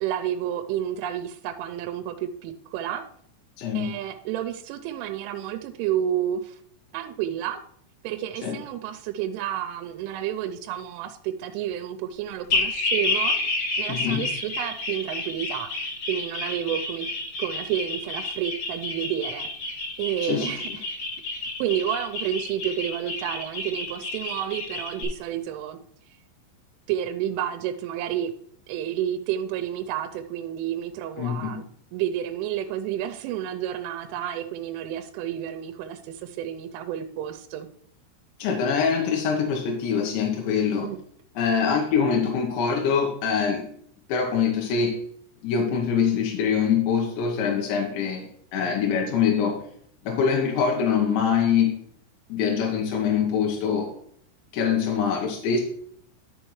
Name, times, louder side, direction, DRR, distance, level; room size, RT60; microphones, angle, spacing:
voice 1, 0.0-3.0 3.7-6.6 6.9-7.6 8.0-13.4 13.8-17.1 17.4-19.5 20.0-20.8 21.6-25.8 26.9-28.3 28.7-31.7 31.9-37.7 40.8-41.0, right 10 dB, 85° right, 6 dB, 3.1 m, -30 dB
voice 2, 3.6-3.9 8.4-8.6 13.9-14.2 20.2-20.5 31.2-31.6 38.4-40.9 41.4-43.7 44.1-45.0 45.4-48.3 48.5-49.6 50.1-51.7 52.3-53.9 54.5-55.6, left 6 dB, 75° left, 0 dB, 3.1 m, -24 dB
sound 1, 12.5-25.0, left 2 dB, 45° left, 3.0 m, -29 dB
11.0 x 6.8 x 3.1 m, 0.64 s
omnidirectional pair, 5.6 m